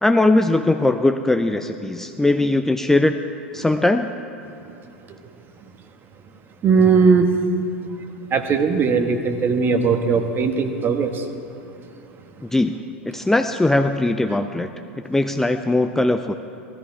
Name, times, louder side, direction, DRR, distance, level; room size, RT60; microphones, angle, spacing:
voice 1, 0.0-3.2 3.5-4.1 12.5-12.8 13.1-14.7 15.1-16.3, left 2 dB, 5° left, 7 dB, 0.5 m, -19 dB
voice 2, 6.6-7.3 8.3-11.2, right 5 dB, 35° right, 7 dB, 1.3 m, -18 dB
16.5 x 13.5 x 4.8 m, 2.9 s
hypercardioid pair, 90°, 6 cm